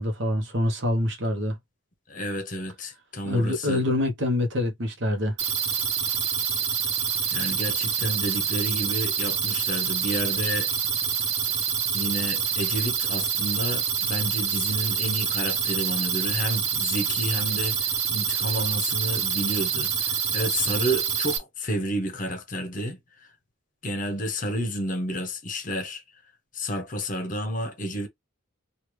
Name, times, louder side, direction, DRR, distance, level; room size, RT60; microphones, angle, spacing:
voice 1, 0.0-1.6 3.2-5.3, left 1 dB, 60° right, 0.9 m, -25 dB
voice 2, 2.1-3.8 7.3-10.7 11.9-23.3 23.8-26.0 26.5-28.1, equal, 40° left, 0.9 m, -30 dB
sound 1, 5.4-21.4, right 7 dB, 90° right, 1.0 m, -26 dB
3.2 x 2.4 x 3.1 m
head